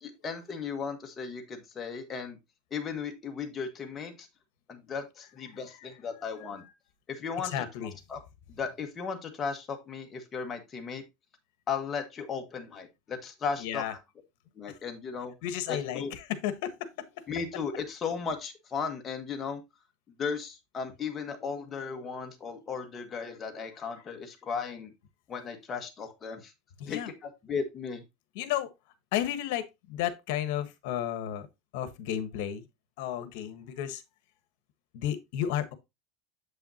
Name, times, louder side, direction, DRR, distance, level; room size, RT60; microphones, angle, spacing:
voice 1, 0.0-2.4 2.7-4.3 4.7-6.6 7.1-7.6 8.1-8.2 8.5-11.0 11.7-13.8 14.6-15.3 15.7-16.1 17.3-19.6 20.2-24.9 25.3-26.5 26.9-28.0, left 5 dB, 25° left, 1.5 m, -36 dB
voice 2, 6.4-6.7 7.4-7.9 13.6-13.9 15.4-16.9 26.8-27.1 28.3-28.7 29.1-31.5 31.7-32.6 33.0-34.0 34.9-35.7, left 11 dB, 70° left, 1.3 m, -33 dB
8.0 x 5.6 x 2.8 m
supercardioid pair, 145°, 0 cm